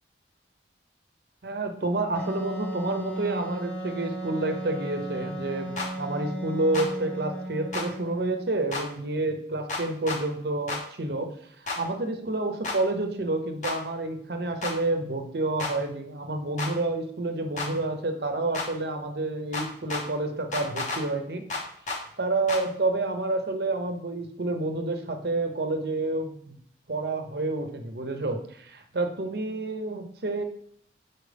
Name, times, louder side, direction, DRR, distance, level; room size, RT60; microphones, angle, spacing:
voice 1, 1.4-21.4 22.2-26.6 26.9-30.4, right 2 dB, 60° right, 6 dB, 0.7 m, -29 dB
Wind instrument woodwind instrument, 2.1-8.6, right 1 dB, 10° left, 0.7 m, -35 dB
sound 1, 5.8-5.9 6.7-6.9 7.7-7.9 8.7-8.8 9.7-10.2 10.7-10.8 11.7-11.8 12.6-12.8 13.6-13.8 14.6-14.8 15.6-15.7 16.6-16.7 17.6-17.7 18.5-18.7 19.5-20.0 20.5-21.0 21.5-22.0 22.5-22.6, left 3 dB, 40° left, 0.9 m, -31 dB
6.4 x 4.3 x 3.4 m, 0.64 s
head